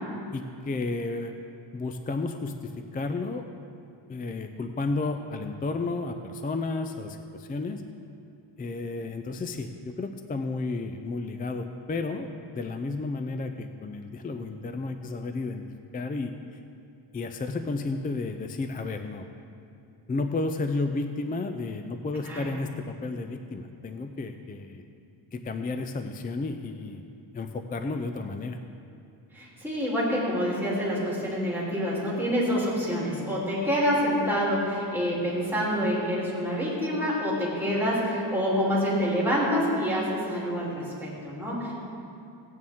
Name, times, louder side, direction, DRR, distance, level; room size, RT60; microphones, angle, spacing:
voice 1, 0.3-1.4 1.7-3.4 4.1-7.8 8.6-12.3 12.5-15.6 15.9-16.3 17.1-19.3 20.1-24.8 25.3-27.0 27.3-28.6, left 3 dB, 20° left, 7 dB, 0.4 m, -32 dB
voice 2, 29.3-41.9, equal, 5° right, -7 dB, 3.1 m, -27 dB
17.0 x 9.2 x 3.6 m, 2.7 s
wide cardioid pair, 135°, 48 cm